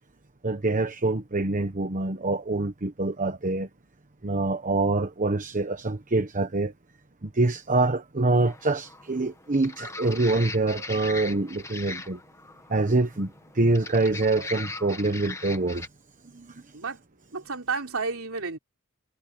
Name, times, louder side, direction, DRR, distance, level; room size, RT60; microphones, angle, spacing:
voice 1, 0.4-3.7 4.2-6.7 7.2-12.2 12.7-13.3 13.5-15.8 16.3-16.6, right 2 dB, 35° right, 1.1 m, -25 dB
sound 1, 8.4-15.9, left 3 dB, 15° left, 1.6 m, -40 dB
voice 2, 17.3-18.6, right 4 dB, 70° right, 3.9 m, -31 dB
head